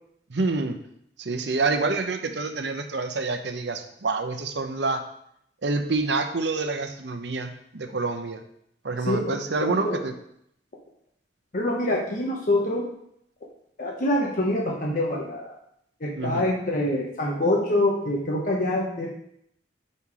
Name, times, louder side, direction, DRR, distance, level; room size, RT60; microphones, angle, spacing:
voice 1, 0.3-0.8 1.2-5.0 5.6-8.4 8.8-10.1 16.2-16.5, right 3 dB, 70° right, 6 dB, 0.7 m, -27 dB
voice 2, 11.5-12.9 13.8-15.5 16.0-19.1, left 1 dB, 50° left, -2 dB, 1.1 m, -25 dB
5.7 x 5.4 x 4.8 m, 0.72 s
head